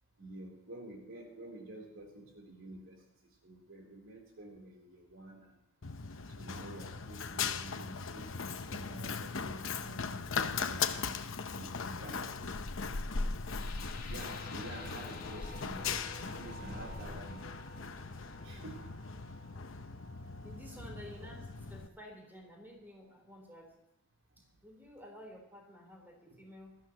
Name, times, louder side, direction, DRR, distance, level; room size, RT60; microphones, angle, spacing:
voice 1, 0.2-5.6 6.4-10.2 10.5-12.6 14.1-17.4 18.4-18.9 20.8-20.9 26.3-26.4, right 1 dB, 70° right, 0 dB, 3.6 m, -49 dB
Run, 5.8-21.9, left 5 dB, 70° left, 0.9 m, -39 dB
sound 1, 13.5-21.5, left 2 dB, 45° left, 2.3 m, -51 dB
voice 2, 20.2-23.8 24.4-26.8, equal, 10° right, 0 dB, 4.0 m, -52 dB
20.5 x 13.5 x 3.0 m, 0.86 s
head